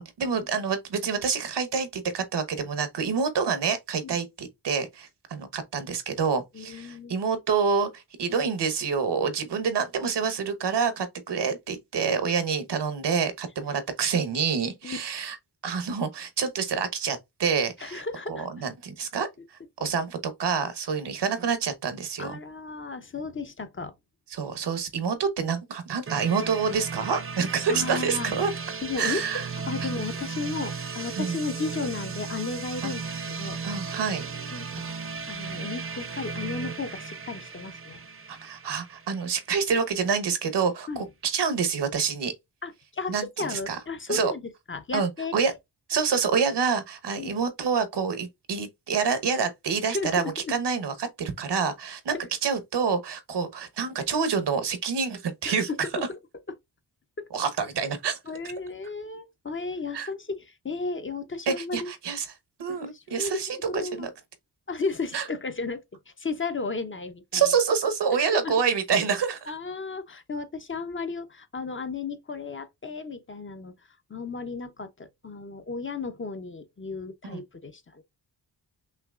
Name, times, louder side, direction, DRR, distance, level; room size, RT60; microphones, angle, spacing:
voice 1, 0.0-15.4 15.6-18.0 18.3-19.3 19.8-22.4 24.3-28.5 29.0-29.4 29.8-29.9 31.2-31.3 32.8-32.9 33.6-34.3 38.3-42.3 43.1-43.8 44.1-44.3 44.9-45.5 45.9-50.2 50.5-52.1 52.4-55.7 56.0-56.1 57.3-58.2 59.9-60.1 61.5-62.3 62.6-64.1 65.1-65.2 67.3-69.5 77.3-77.4, right 6 dB, 80° right, 1.1 m, -27 dB
voice 2, 6.5-7.2 14.8-15.0 17.8-18.5 22.2-23.9 27.7-28.3 28.8-33.0 33.3-33.7 34.5-34.9 35.3-38.0 40.9-41.0 42.6-44.4 44.7-45.3 47.2-47.4 49.8-50.5 55.4-56.2 57.2-57.3 58.3-61.9 62.7-64.1 64.7-67.5 68.3-68.5 69.5-78.0, left 4 dB, 30° left, 0.6 m, -34 dB
sound 1, 26.1-39.8, right 5 dB, 30° right, 0.7 m, -36 dB
5.7 x 2.9 x 2.4 m
wide cardioid pair, 95°, 41 cm